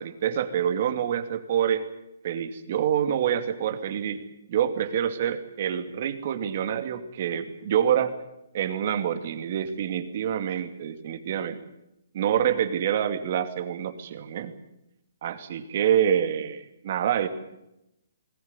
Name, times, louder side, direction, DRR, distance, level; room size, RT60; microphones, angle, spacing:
voice 1, 0.0-1.8 2.2-4.2 4.5-8.1 8.5-11.6 12.1-14.5 15.2-17.3, right 9 dB, 45° right, 9 dB, 2.5 m, -26 dB
20.5 x 17.5 x 9.8 m, 0.86 s
hypercardioid pair, 160°, 0 cm